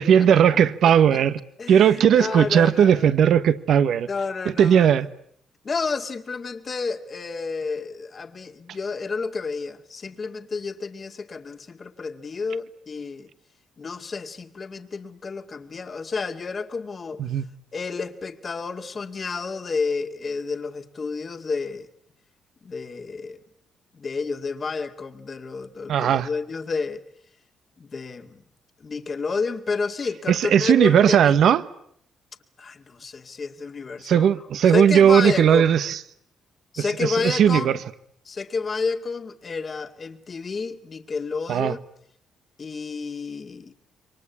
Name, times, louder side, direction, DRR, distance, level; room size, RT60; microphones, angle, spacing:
voice 1, 0.0-1.4 1.7-4.1 4.4-5.1 17.2-17.4 25.9-26.3 30.3-31.6 34.0-36.0 36.8-37.8 41.5-41.8, right 8 dB, 70° right, 1.3 m, -17 dB
voice 2, 1.6-3.1 4.1-4.9 5.6-13.3 13.8-17.2 17.7-21.9 22.6-23.4 23.9-27.0 27.8-28.4 28.8-31.3 32.6-34.3 34.6-35.7 36.7-37.8 38.3-41.8 42.6-43.7, left 4 dB, 40° left, 2.1 m, -30 dB
27.5 x 24.0 x 8.4 m
cardioid pair, 90°, 0 cm